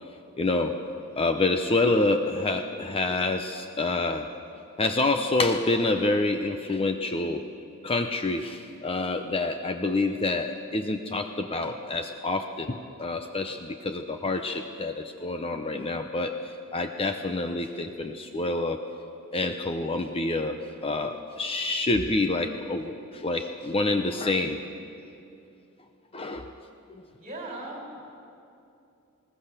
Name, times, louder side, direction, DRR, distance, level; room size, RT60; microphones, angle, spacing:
voice 1, 0.4-0.8 1.2-4.3 4.8-7.5 7.8-16.3 16.7-18.8 19.3-20.6 20.8-24.6 26.1-26.5, left 2 dB, 25° left, 6 dB, 0.7 m, -27 dB
voice 2, 27.2-28.1, right 1 dB, 30° right, -1 dB, 5.4 m, -38 dB
21.0 x 18.5 x 6.7 m, 2.6 s
head